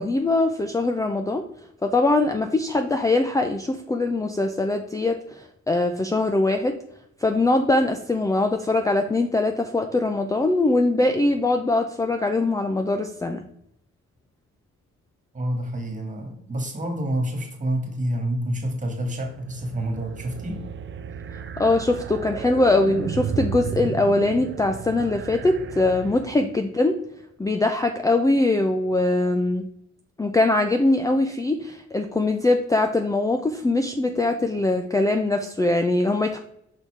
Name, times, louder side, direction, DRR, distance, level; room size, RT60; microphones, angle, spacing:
voice 1, 0.0-1.4 1.8-6.7 7.2-13.4 21.3-26.9 27.4-29.6 30.2-36.4, left 2 dB, 10° left, 6 dB, 0.5 m, -22 dB
voice 2, 15.3-20.7, right 1 dB, 25° right, 4 dB, 1.9 m, -28 dB
sound 1, 19.3-26.6, right 7 dB, 40° right, 0.5 m, -34 dB
5.7 x 4.1 x 4.6 m, 0.76 s
cardioid pair, 90°, 30 cm